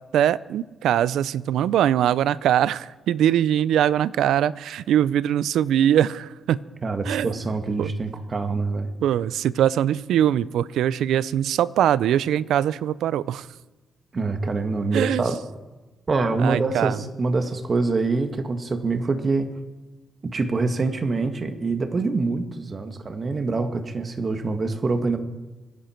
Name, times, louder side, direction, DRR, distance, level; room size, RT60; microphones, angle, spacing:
voice 1, 0.1-6.6 7.1-7.3 7.8-7.9 9.0-13.5 14.9-15.2 16.4-17.0, right 10 dB, 85° right, 19 dB, 0.5 m, -22 dB
voice 2, 6.8-8.9 14.1-15.4 16.1-19.5 20.2-25.2, right 3 dB, 40° right, 7 dB, 1.7 m, -25 dB
25.0 x 10.5 x 4.5 m, 1.2 s
cardioid pair, 85°, 0 cm